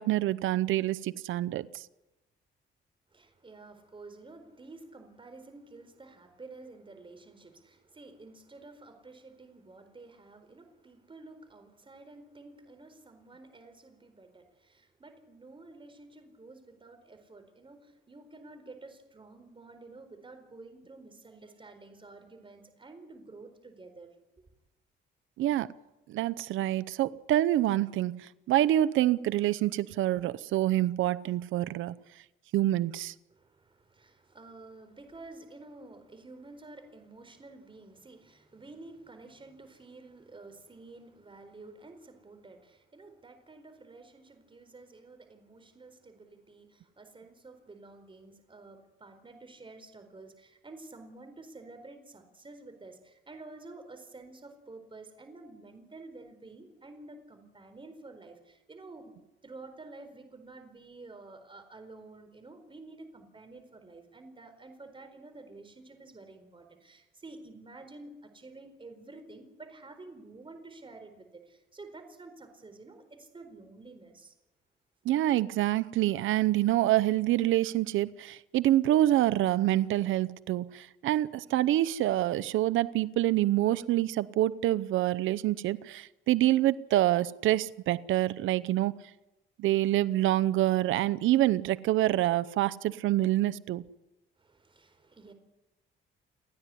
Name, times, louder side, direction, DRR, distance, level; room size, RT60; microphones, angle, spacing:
voice 1, 0.0-1.8 25.4-25.7 26.1-31.9 32.5-33.1 75.0-89.0 89.6-93.8, right 14 dB, 80° right, 15 dB, 0.7 m, -26 dB
voice 2, 3.1-24.1 33.3-59.1 59.4-74.3 94.4-95.3, right 3 dB, 25° right, 7 dB, 4.4 m, -50 dB
29.5 x 10.0 x 9.8 m, 1.0 s
cardioid pair, 90°, 20 cm